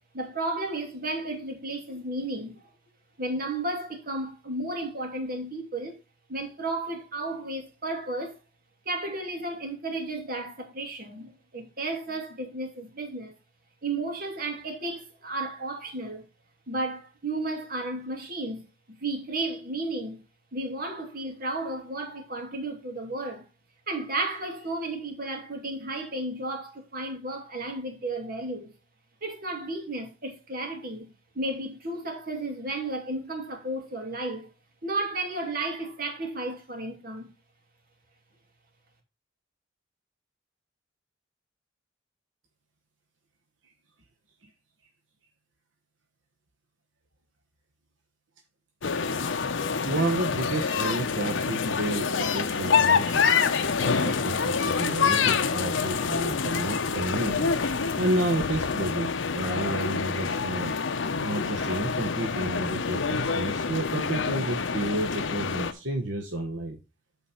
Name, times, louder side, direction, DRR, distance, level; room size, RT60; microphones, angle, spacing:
voice 1, 0.1-2.7 3.2-6.0 6.3-8.4 8.9-13.3 13.8-16.3 16.7-20.2 20.5-23.4 23.9-28.7 29.2-34.5 34.8-37.3, right 2 dB, 50° right, 2.3 m, -33 dB
sound 1, 48.8-65.7, left 5 dB, 75° left, 0.8 m, -27 dB
voice 2, 49.9-53.3 53.8-57.5 58.0-60.8 61.2-66.8, right 2 dB, 75° right, 1.2 m, -31 dB
8.4 x 4.0 x 5.6 m
head